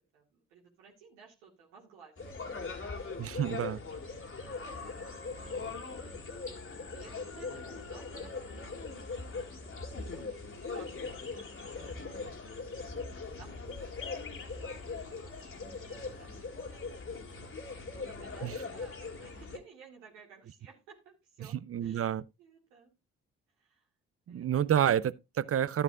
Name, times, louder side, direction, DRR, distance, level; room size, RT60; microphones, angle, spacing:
voice 1, 0.1-3.5 4.7-9.6 10.0-11.4 13.1-16.3 16.6-17.1 17.9-21.5 21.8-23.0 23.6-23.9 24.3-24.5, right 6 dB, 90° right, 2.1 m, -57 dB
sound 1, 2.2-19.6, left 4 dB, 40° left, 2.1 m, -41 dB
voice 2, 3.2-3.8 18.4-18.5 21.7-22.2 24.3-25.8, right 10 dB, 40° right, 0.5 m, -29 dB
12.0 x 9.0 x 2.4 m
hypercardioid pair, 45°, 35 cm